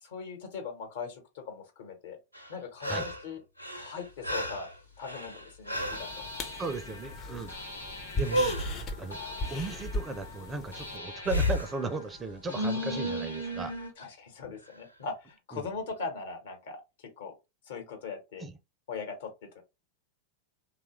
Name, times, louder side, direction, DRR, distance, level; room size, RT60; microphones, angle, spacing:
voice 1, 0.0-2.2 2.5-3.4 3.7-4.7 5.0-6.1 14.0-17.3 17.7-18.4 18.9-19.6, left 5 dB, 60° left, 1.1 m, -40 dB
sound 1, 2.3-3.3 3.6-6.2 8.2-8.8 11.2-11.8 14.7-14.8, equal, 90° right, 0.6 m, -32 dB
sound 2, 5.7-11.0, left 1 dB, 30° left, 0.6 m, -39 dB
sound 3, 5.9-13.9, equal, 85° left, 0.9 m, -39 dB
voice 2, 6.6-7.5 8.1-8.6 9.0-9.2 9.5-13.7 15.5-15.7 18.4-18.5, right 3 dB, 20° right, 0.4 m, -36 dB
3.0 x 2.3 x 3.0 m
figure-of-eight pair, 90°, 0 cm